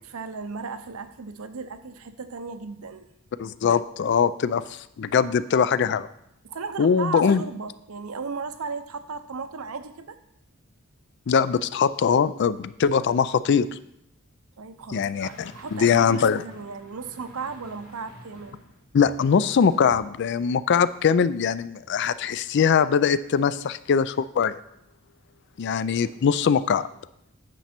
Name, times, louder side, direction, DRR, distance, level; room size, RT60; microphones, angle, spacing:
voice 1, 0.1-3.1 6.4-10.2 14.6-18.6, right 5 dB, 85° right, 10 dB, 0.7 m, -36 dB
voice 2, 3.4-6.1 6.8-7.4 11.3-13.7 14.9-16.4 18.9-24.5 25.6-26.9, left 6 dB, 55° left, 16 dB, 0.3 m, -22 dB
sound 1, 15.2-20.1 20.4-20.5, equal, 80° left, 3.3 m, -49 dB
9.0 x 6.0 x 4.3 m, 0.79 s
head